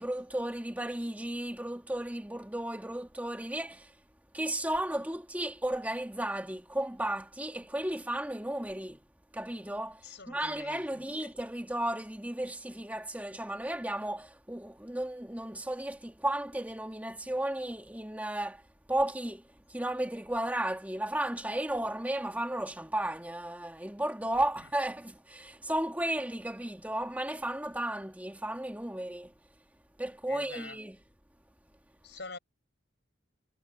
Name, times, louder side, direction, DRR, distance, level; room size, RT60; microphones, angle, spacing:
voice 1, 0.0-3.9 4.3-9.0 9.3-18.6 18.9-29.3 30.0-31.0, right 1 dB, 5° right, 1.8 m, -34 dB
voice 2, 10.0-11.0 30.3-30.8 32.0-32.4, left 4 dB, 55° left, 7.8 m, -45 dB
head